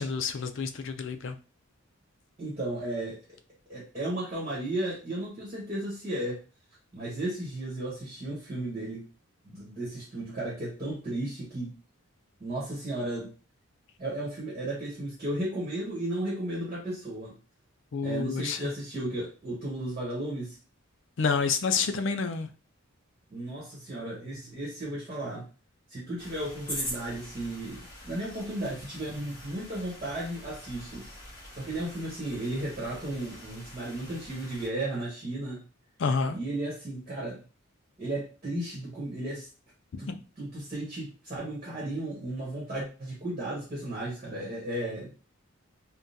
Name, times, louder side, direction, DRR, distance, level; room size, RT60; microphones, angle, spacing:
voice 1, 0.0-1.3 17.9-18.6 21.2-22.5 36.0-36.4 40.1-40.2, left 5 dB, 55° left, 8 dB, 0.4 m, -28 dB
voice 2, 2.4-3.2 3.7-6.4 6.9-9.0 9.4-11.7 12.4-13.3 14.0-17.3 18.0-20.6 23.3-25.4 25.9-31.0 31.5-35.6 36.3-37.4 38.0-39.5 40.0-45.1, right 1 dB, 30° right, -5 dB, 1.2 m, -34 dB
sound 1, 26.2-34.7, left 1 dB, 25° left, 1.8 m, -43 dB
3.6 x 2.2 x 2.7 m, 0.34 s
head